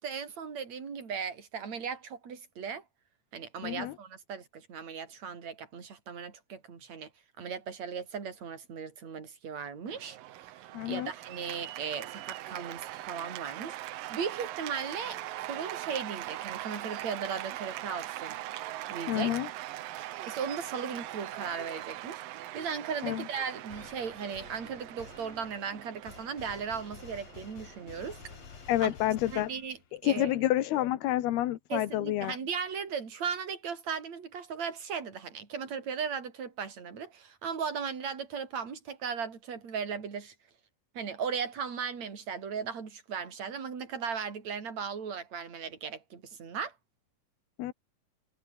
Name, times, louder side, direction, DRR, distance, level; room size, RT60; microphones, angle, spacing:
voice 1, 0.0-2.8 3.3-7.1 7.4-10.5 10.9-13.8 14.1-18.4 18.9-19.4 20.0-22.2 22.5-28.2 28.6-28.9 29.3-29.8 30.0-30.3 31.7-40.4 41.0-46.7, right 6 dB, 45° right, 5.2 m, -37 dB
voice 2, 3.6-4.0 10.7-11.1 19.1-19.5 23.0-23.3 28.7-29.5 30.0-32.4 47.6-47.7, left 14 dB, 80° left, 3.2 m, -29 dB
Cheering / Applause, 9.9-29.1, right 14 dB, 70° right, 2.5 m, -41 dB
sound 1, 23.7-30.0, left 7 dB, 45° left, 3.0 m, -51 dB
omnidirectional pair, 4.5 m